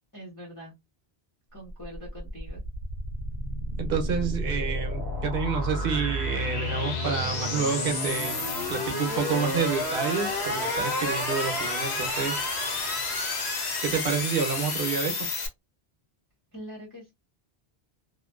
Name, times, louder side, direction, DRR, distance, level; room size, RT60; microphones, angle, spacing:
voice 1, 0.1-0.7 1.5-2.6 16.5-17.1, equal, 20° left, 0.7 m, -43 dB
sound 1, 1.7-15.5, left 2 dB, 85° left, 1.0 m, -30 dB
voice 2, 3.8-8.4 8.7-12.3 13.8-15.2, right 6 dB, 65° right, 0.8 m, -29 dB
2.5 x 2.1 x 2.3 m
omnidirectional pair, 1.0 m